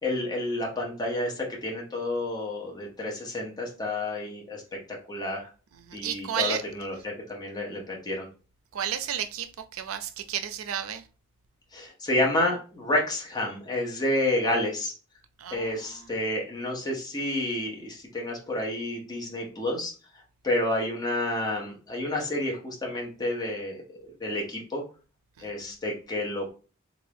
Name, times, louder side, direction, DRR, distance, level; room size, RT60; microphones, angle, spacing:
voice 1, 0.0-4.6 5.1-5.5 5.9-8.3 11.7-14.9 15.5-19.9 20.4-24.8 25.4-26.5, left 1 dB, 20° left, 0.8 m, -30 dB
voice 2, 5.7-6.6 8.7-11.0 15.4-16.1 25.4-25.5, right 9 dB, 80° right, 0.4 m, -32 dB
3.5 x 2.5 x 3.3 m
head